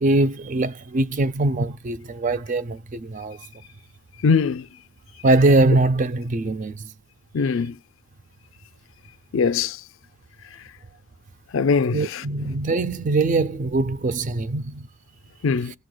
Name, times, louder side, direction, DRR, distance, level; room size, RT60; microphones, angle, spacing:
voice 1, 0.0-3.4 5.2-6.9 11.9-14.9, right 2 dB, 40° right, 0.4 m, -22 dB
voice 2, 4.2-4.6 7.3-7.7 9.3-9.8 11.5-12.2 15.4-15.7, left 5 dB, 70° left, 0.4 m, -21 dB
18.0 x 6.3 x 2.2 m
head